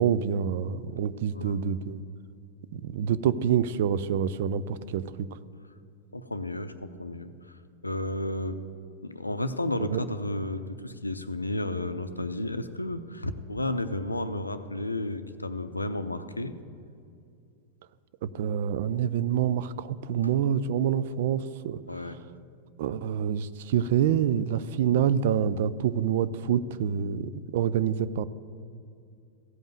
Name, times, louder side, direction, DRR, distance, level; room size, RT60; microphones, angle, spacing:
voice 1, 0.0-2.0 2.7-5.3 9.8-10.0 18.2-21.8 22.8-28.2, right 8 dB, 55° right, 16 dB, 0.4 m, -27 dB
voice 2, 6.1-7.3 7.8-8.6 9.0-16.5 20.2-20.4 21.9-22.2, left 1 dB, 85° left, 11 dB, 0.5 m, -32 dB
15.0 x 5.4 x 9.0 m, 2.4 s
figure-of-eight pair, 90°, 0 cm